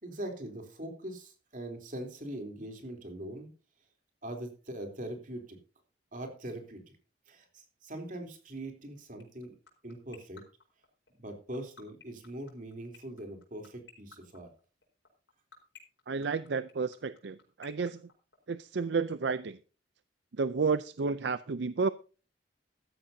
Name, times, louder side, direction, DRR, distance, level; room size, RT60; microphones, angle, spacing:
voice 1, 0.0-3.5 4.2-5.6 6.1-6.8 7.3-9.6 9.8-10.4 11.2-14.5, right 1 dB, 45° right, 4 dB, 3.4 m, -42 dB
sound 1, 9.2-18.8, left 6 dB, 75° left, 4.5 m, -52 dB
voice 2, 16.1-18.0 18.5-19.6 20.4-21.9, right 4 dB, 70° right, 14 dB, 0.5 m, -31 dB
14.5 x 13.5 x 2.8 m, 0.36 s
head